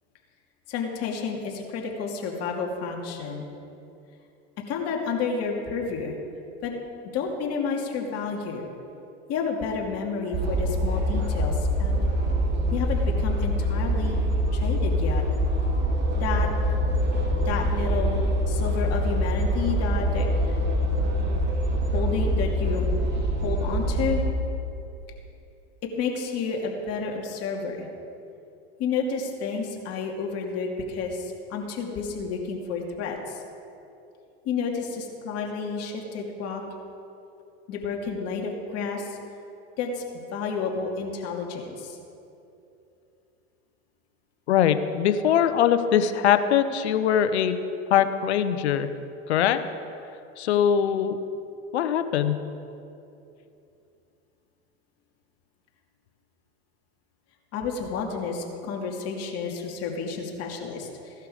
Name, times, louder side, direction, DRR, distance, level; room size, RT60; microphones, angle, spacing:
voice 1, 0.7-3.5 4.6-6.2 6.6-6.7 7.1-8.6 9.3-12.0 12.7-15.2 16.2-16.5 17.4-20.6 21.9-22.9 23.4-24.2 25.9-27.9 28.8-33.4 34.4-36.6 37.7-39.2 39.8-40.1 40.3-42.0 57.5-61.1, left 5 dB, 50° left, 0 dB, 2.5 m, -30 dB
sound 1, 10.3-24.2, equal, 30° right, 3.0 m, -24 dB
voice 2, 44.5-47.5 47.9-48.9 49.3-49.6 50.4-51.2 51.7-52.4, left 9 dB, 85° left, 11 dB, 1.0 m, -22 dB
16.5 x 11.5 x 5.0 m, 2.8 s
hypercardioid pair, 105°, 32 cm